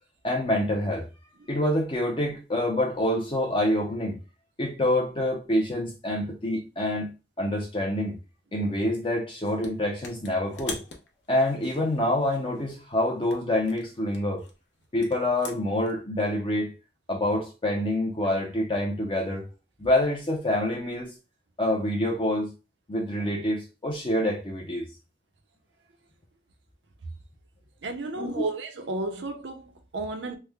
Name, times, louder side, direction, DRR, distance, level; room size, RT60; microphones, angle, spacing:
voice 1, 0.2-1.1 1.5-4.2 4.6-7.1 7.4-8.2 8.5-10.8 11.3-14.4 14.9-16.7 17.1-19.5 19.8-21.1 21.6-22.5 22.9-24.8 28.2-28.5, left 1 dB, 30° left, 0.5 m, -26 dB
sound 1, 9.4-9.7 10.0-12.8 13.3-15.9, left 4 dB, 75° left, 0.7 m, -43 dB
voice 2, 27.8-30.4, right 2 dB, 75° right, 0.6 m, -33 dB
3.2 x 2.1 x 3.4 m
head